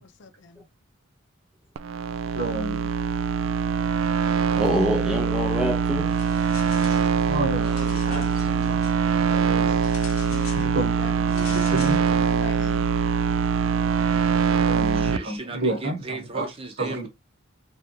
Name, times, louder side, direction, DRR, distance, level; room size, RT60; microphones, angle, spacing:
voice 1, 0.0-0.7 10.2-12.9, left 3 dB, 60° left, 0.5 m, -42 dB
sound 1, 1.8-15.2, right 6 dB, 70° right, 0.3 m, -23 dB
voice 2, 2.3-2.9 7.3-7.7 8.0-8.8 9.3-9.9 10.3-12.0 14.6-16.5 16.8-17.1, right 2 dB, 50° right, 1.3 m, -30 dB
voice 3, 4.2-6.2 16.9-17.0, left 1 dB, 5° right, 0.5 m, -26 dB
sound 2, 6.0-7.1 7.5-9.0 9.8-10.7 11.3-12.0, left 9 dB, 90° left, 0.7 m, -43 dB
voice 4, 7.5-8.5 14.8-17.1, right 3 dB, 25° right, 0.8 m, -37 dB
3.5 x 3.3 x 2.9 m
head